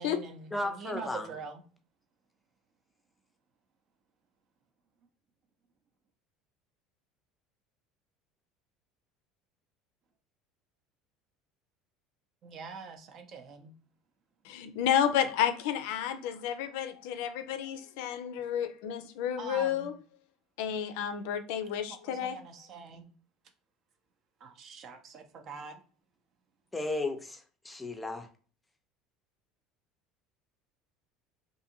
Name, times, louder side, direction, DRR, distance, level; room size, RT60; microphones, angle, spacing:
voice 1, 0.0-1.6 12.4-13.7 19.4-19.9 21.9-23.1 24.4-25.8, right 5 dB, 50° right, 0.5 m, -44 dB
voice 2, 0.5-1.3 26.7-28.3, left 2 dB, 10° left, 0.5 m, -34 dB
voice 3, 14.4-19.9 20.6-22.4, left 9 dB, 80° left, 0.4 m, -31 dB
2.5 x 2.5 x 2.7 m
supercardioid pair, 110°, 0 cm